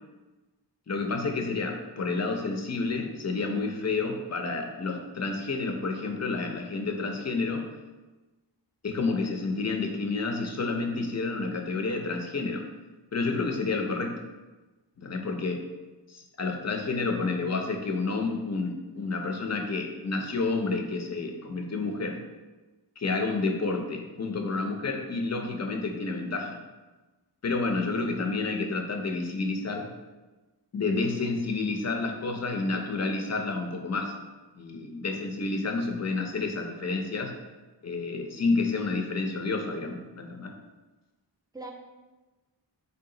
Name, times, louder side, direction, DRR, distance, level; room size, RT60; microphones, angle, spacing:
voice 1, 0.9-7.7 8.8-12.7 13.1-14.2 15.0-15.6 16.1-22.2 23.0-26.6 27.4-29.9 30.7-34.1 34.5-37.3 37.8-40.5, left 3 dB, 40° left, 3 dB, 0.6 m, -30 dB
voice 2, 27.8-28.1 28.4-28.9 41.5-41.7, right 2 dB, 10° right, 1 dB, 0.5 m, -45 dB
3.8 x 2.4 x 3.7 m, 1.2 s
wide cardioid pair, 55°, 43 cm